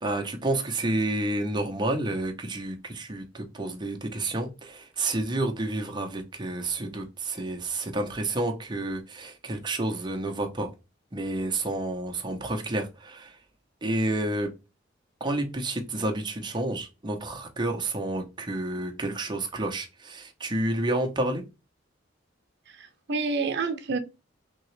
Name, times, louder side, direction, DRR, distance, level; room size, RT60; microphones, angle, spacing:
voice 1, 0.0-10.7 11.1-13.4 13.8-14.5 15.2-21.4, right 2 dB, 25° right, 0.7 m, -30 dB
voice 2, 22.7-24.0, right 4 dB, 60° right, 0.7 m, -29 dB
3.7 x 2.9 x 3.1 m
head